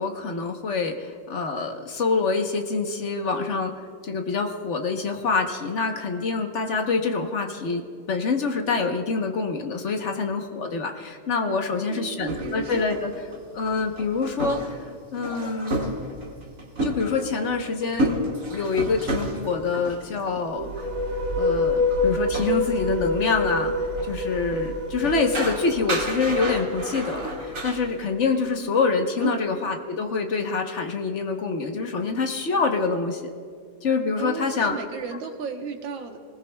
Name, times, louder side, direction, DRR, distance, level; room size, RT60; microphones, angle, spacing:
voice 1, 0.0-3.7 4.0-13.1 13.5-15.9 16.8-18.2 18.5-20.9 21.4-23.7 24.0-33.3 33.8-34.7, left 4 dB, 45° left, 4 dB, 1.1 m, -26 dB
voice 2, 11.9-12.9 29.2-29.4 34.2-36.2, right 6 dB, 90° right, 3 dB, 1.9 m, -33 dB
sound 1, 12.3-20.4 20.8-20.9 21.9-22.0 22.3-22.5 23.2-23.3 24.0-24.6 25.0-27.8, right 1 dB, 45° right, 2.3 m, -31 dB
sound 2, 20.5-28.1, left 2 dB, 60° right, 1.9 m, -27 dB
24.5 x 20.0 x 2.3 m, 2.1 s
omnidirectional pair, 2.0 m